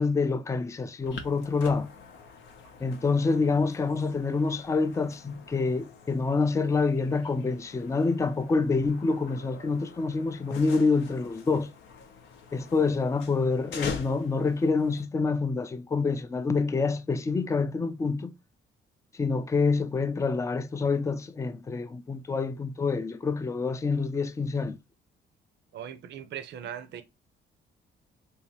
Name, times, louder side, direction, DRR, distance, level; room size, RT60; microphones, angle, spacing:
voice 1, 0.0-1.9 2.8-11.7 12.5-18.3 19.2-24.8, left 4 dB, 15° left, 0.3 m, -27 dB
sound 1, 1.0-15.1, left 5 dB, 75° left, 0.6 m, -45 dB
voice 2, 25.7-27.0, right 9 dB, 60° right, 0.5 m, -39 dB
3.3 x 2.7 x 2.9 m
cardioid pair, 90°, 20 cm